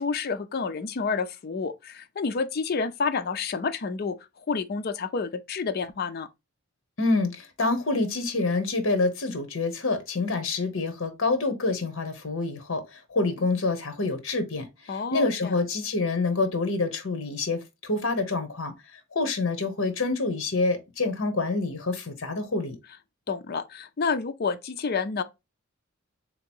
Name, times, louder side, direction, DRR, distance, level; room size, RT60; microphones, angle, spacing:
voice 1, 0.0-4.2 4.5-6.3 14.9-15.5 23.3-25.2, left 5 dB, 45° left, 0.4 m, -29 dB
voice 2, 7.0-22.8, left 3 dB, 65° left, 0.9 m, -27 dB
3.7 x 2.9 x 4.3 m
head